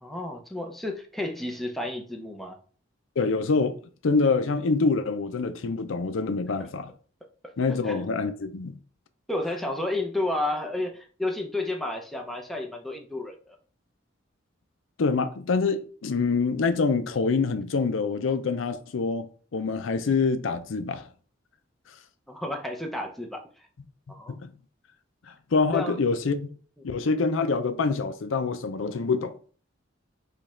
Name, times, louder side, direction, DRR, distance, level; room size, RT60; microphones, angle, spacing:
voice 1, 0.0-2.6 7.4-8.0 9.3-13.6 22.3-23.4 24.1-24.4 25.7-26.0, left 2 dB, ahead, 0.6 m, -31 dB
voice 2, 3.2-3.8 4.0-6.9 7.6-8.8 15.0-21.1 24.3-24.5 25.5-26.5 26.8-29.3, left 4 dB, 85° left, 0.5 m, -25 dB
5.1 x 2.4 x 4.2 m
head